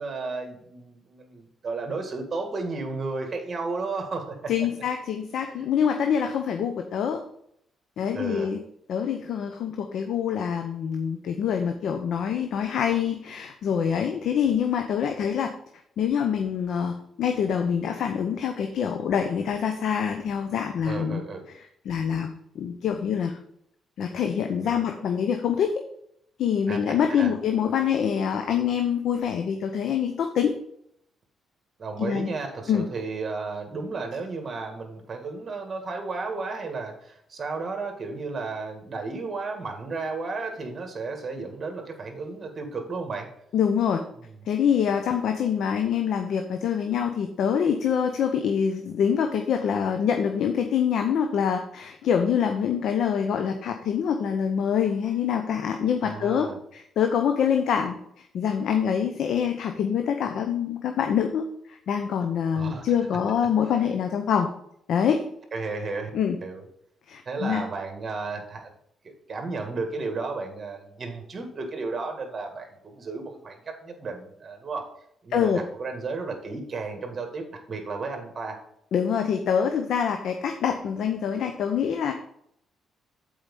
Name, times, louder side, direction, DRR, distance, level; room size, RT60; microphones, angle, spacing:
voice 1, 0.0-4.5 8.1-8.5 20.9-21.4 24.6-24.9 26.7-26.8 27.2-27.3 31.8-43.3 44.2-44.4 56.0-56.6 62.5-63.0 65.5-66.1 66.4-66.6 67.3-68.7 69.0-74.9 75.2-78.6, right 3 dB, 35° right, 4 dB, 2.0 m, -33 dB
voice 2, 4.5-7.2 8.0-8.6 8.9-15.5 16.0-21.2 21.9-23.4 24.0-25.8 26.4-30.6 32.0-32.3 32.7-32.8 43.5-44.1 44.5-58.0 58.3-64.5 64.9-65.2 66.1-66.4 67.1-67.6 75.3-75.7 78.9-82.1, left 7 dB, 70° left, 5 dB, 0.7 m, -25 dB
7.5 x 4.8 x 5.4 m, 0.72 s
cardioid pair, 90°, 0 cm